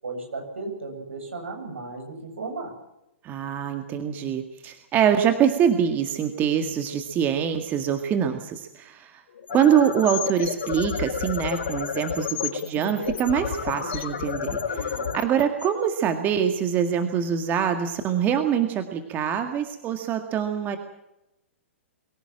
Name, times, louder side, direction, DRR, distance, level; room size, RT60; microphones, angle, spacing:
voice 1, 0.0-2.7 14.7-15.2, right 3 dB, 70° right, 3 dB, 7.7 m, -35 dB
voice 2, 3.2-9.2 9.5-14.6 15.2-20.8, right 8 dB, 25° right, 7 dB, 2.0 m, -24 dB
sound 1, 9.3-16.4, left 8 dB, 55° left, 6.1 m, -31 dB
23.5 x 16.5 x 7.6 m, 0.87 s
figure-of-eight pair, 110°, 7 cm